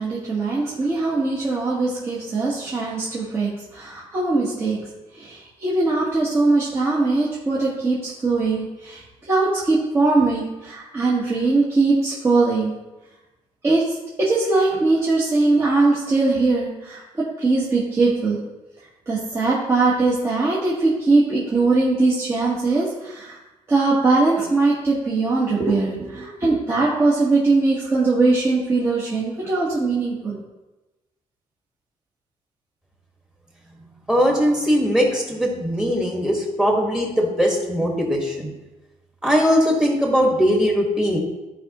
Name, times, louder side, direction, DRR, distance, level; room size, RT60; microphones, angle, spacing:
voice 1, 0.0-4.8 5.2-12.7 13.6-18.4 19.1-23.4 23.7-30.4, right 3 dB, 25° right, -7 dB, 1.4 m, -21 dB
voice 2, 34.1-38.5 39.2-41.2, equal, 5° right, -1 dB, 1.5 m, -20 dB
14.0 x 5.0 x 3.0 m, 1.1 s
cardioid pair, 175°, 11 cm